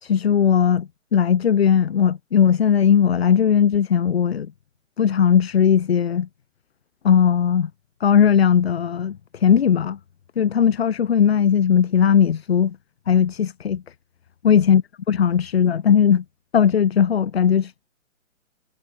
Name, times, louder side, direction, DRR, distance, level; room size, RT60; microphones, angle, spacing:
voice 1, 0.0-4.5 5.0-6.3 7.0-7.7 8.0-10.0 10.4-12.8 13.1-13.8 14.4-16.2 16.5-17.7, left 8 dB, 50° left, 0.7 m, -18 dB
figure-of-eight pair, 130°, 40 cm